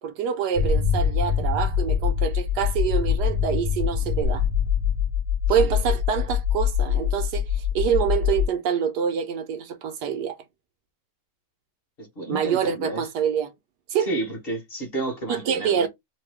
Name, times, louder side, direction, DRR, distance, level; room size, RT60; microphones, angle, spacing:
voice 1, 0.0-4.4 5.5-10.4 12.3-13.5 13.9-14.1 15.3-15.9, right 8 dB, 80° right, 1.2 m, -26 dB
sound 1, 0.5-8.5, left 8 dB, 45° right, 0.9 m, -24 dB
voice 2, 12.0-13.1 14.0-15.9, right 2 dB, 40° left, 1.0 m, -31 dB
3.0 x 2.2 x 3.3 m
omnidirectional pair, 1.8 m